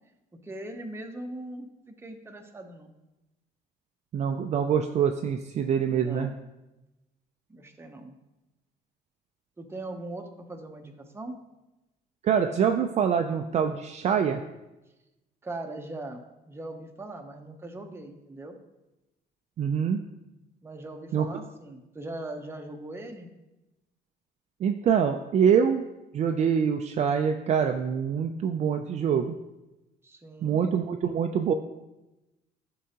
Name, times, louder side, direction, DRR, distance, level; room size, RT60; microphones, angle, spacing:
voice 1, 0.4-2.9 5.8-6.3 7.5-8.2 9.6-11.4 15.4-18.6 20.6-23.3 30.0-30.6, right 2 dB, 15° right, 4 dB, 0.8 m, -40 dB
voice 2, 4.1-6.3 12.2-14.4 19.6-20.0 21.1-21.3 24.6-25.8 26.1-29.4 30.4-31.5, right 7 dB, 40° right, 5 dB, 0.4 m, -25 dB
11.0 x 3.8 x 2.9 m, 1.0 s
cardioid pair, 110°, 17 cm